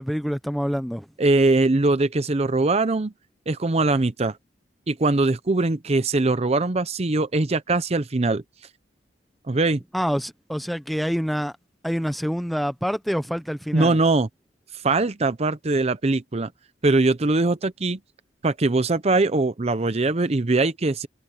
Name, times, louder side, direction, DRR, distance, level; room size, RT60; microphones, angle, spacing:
voice 1, 0.0-1.1 9.9-11.5 11.8-14.0, equal, ahead, 0.8 m, -26 dB
voice 2, 1.2-3.1 3.5-4.4 4.9-8.4 9.5-9.8 13.7-14.3 14.7-16.5 16.8-18.0 18.4-21.1, right 2 dB, 35° right, 0.7 m, -21 dB
head